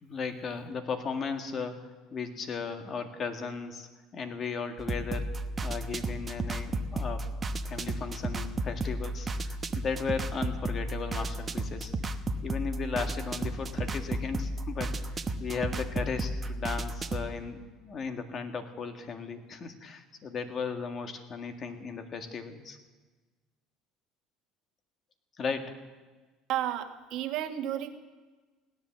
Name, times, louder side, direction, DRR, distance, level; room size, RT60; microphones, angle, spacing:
voice 1, 0.0-5.3 5.6-11.9 12.4-22.8 25.4-25.8, left 5 dB, 40° left, 6 dB, 1.9 m, -36 dB
sound 1, 4.8-17.3, right 2 dB, 25° right, 0.9 m, -33 dB
voice 2, 26.5-27.9, right 11 dB, 65° right, 4 dB, 1.5 m, -32 dB
17.0 x 11.0 x 7.4 m, 1.3 s
supercardioid pair, 95°, 0 cm